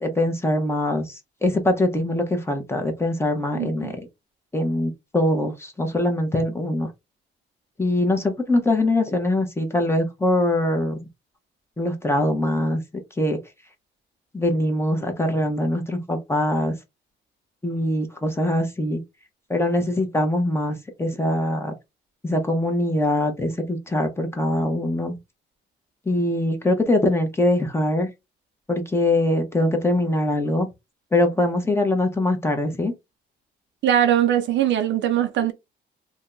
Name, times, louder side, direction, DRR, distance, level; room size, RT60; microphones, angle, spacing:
voice 1, 0.0-4.0 4.5-6.9 7.8-11.0 11.8-12.8 13.2-13.4 14.3-16.8 17.6-19.0 19.5-21.7 22.2-25.2 26.1-28.1 28.7-30.7 31.1-32.9, left 1 dB, 10° left, 0.9 m, -23 dB
voice 2, 3.6-3.9 33.8-35.5, right 10 dB, 65° right, 0.5 m, -21 dB
2.7 x 2.2 x 3.7 m
cardioid pair, 90°, 20 cm